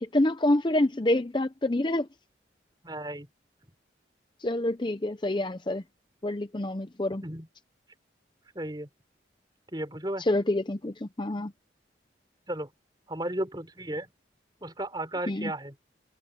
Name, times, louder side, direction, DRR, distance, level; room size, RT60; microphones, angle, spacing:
voice 1, 0.0-2.1 4.4-5.8 6.2-7.2 10.2-11.5 15.3-15.5, left 1 dB, 25° left, 0.6 m, -27 dB
voice 2, 2.8-3.3 7.2-7.5 8.5-8.9 9.7-10.3 12.5-12.7 13.1-14.1 14.6-15.7, right 1 dB, 20° right, 4.7 m, -34 dB
head